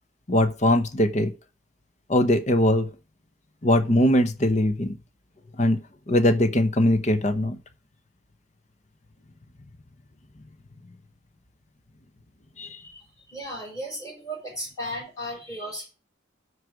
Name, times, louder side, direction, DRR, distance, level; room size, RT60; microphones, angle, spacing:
voice 1, 0.3-1.3 2.1-2.9 3.6-5.0 5.6-7.6 12.6-12.8, left 1 dB, 35° left, 0.9 m, -21 dB
voice 2, 12.8-15.9, equal, 15° left, 5.4 m, -35 dB
13.0 x 4.9 x 4.8 m
head